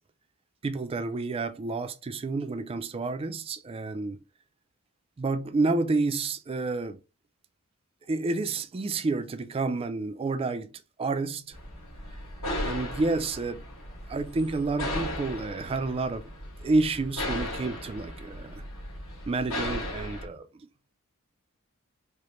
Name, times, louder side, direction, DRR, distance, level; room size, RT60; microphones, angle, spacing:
voice 1, 0.6-4.2 5.2-7.0 8.1-10.7 11.0-11.6 12.6-13.6 14.1-16.3 16.6-18.6 19.3-20.7, right 3 dB, 25° right, 0.3 m, -29 dB
sound 1, 11.5-20.2, left 1 dB, 65° left, 2.0 m, -36 dB
4.9 x 2.1 x 3.0 m
head